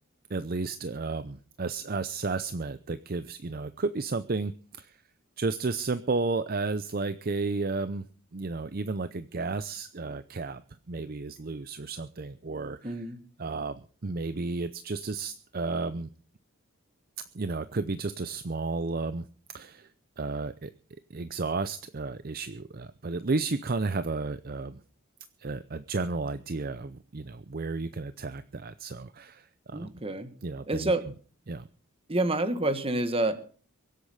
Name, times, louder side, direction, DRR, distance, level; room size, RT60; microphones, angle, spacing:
voice 1, 0.3-5.0 5.4-8.0 8.3-10.6 10.9-12.8 13.4-16.1 17.3-19.2 19.5-19.9 20.2-20.7 21.1-24.8 25.4-29.9 30.4-30.9 31.5-31.7, right 3 dB, 40° right, 12 dB, 0.6 m, -32 dB
voice 2, 12.8-13.2 29.7-30.3 30.7-31.0 32.1-33.4, right 2 dB, 25° right, 11 dB, 1.4 m, -28 dB
23.0 x 8.3 x 5.5 m, 0.42 s
head